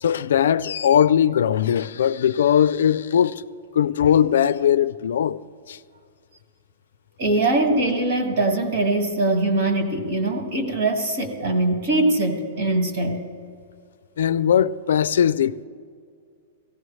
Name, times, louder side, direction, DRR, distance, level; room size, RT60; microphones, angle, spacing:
voice 1, 0.0-3.4 3.7-5.4 5.7-5.8 14.2-15.6, left 9 dB, 85° left, 0.4 m, -19 dB
voice 2, 7.2-13.2, right 2 dB, 50° right, 1.9 m, -22 dB
17.0 x 15.5 x 3.2 m
supercardioid pair, 170°, 0 cm